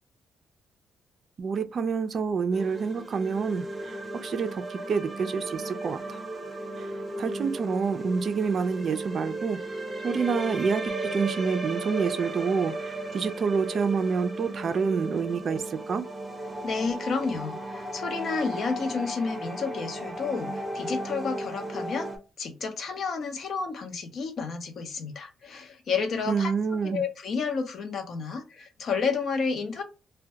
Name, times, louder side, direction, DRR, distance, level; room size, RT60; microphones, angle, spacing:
voice 1, 1.4-6.2 6.8-6.9 7.2-9.6 10.0-16.1 26.3-27.0, right 5 dB, 50° right, 0.4 m, -28 dB
sound 1, 2.5-22.2, right 1 dB, 15° right, 0.7 m, -35 dB
voice 2, 16.6-22.1 22.4-26.5 26.9-29.8, left 5 dB, 60° left, 0.6 m, -31 dB
2.2 x 2.1 x 2.7 m
cardioid pair, 90°, 0 cm